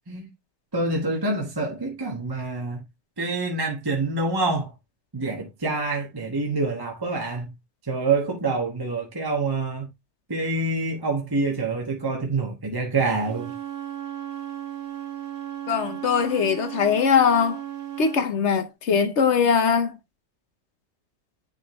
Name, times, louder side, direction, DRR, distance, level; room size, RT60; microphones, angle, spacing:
voice 1, 0.7-2.8 3.2-4.7 5.1-7.5 7.9-9.9 10.3-13.5, right 3 dB, 15° right, 1.0 m, -26 dB
Wind instrument woodwind instrument, 13.2-18.2, right 11 dB, 70° right, 1.6 m, -35 dB
voice 2, 15.7-17.6 18.0-20.0, left 6 dB, 55° left, 1.0 m, -21 dB
9.8 x 3.6 x 3.0 m
omnidirectional pair, 1.7 m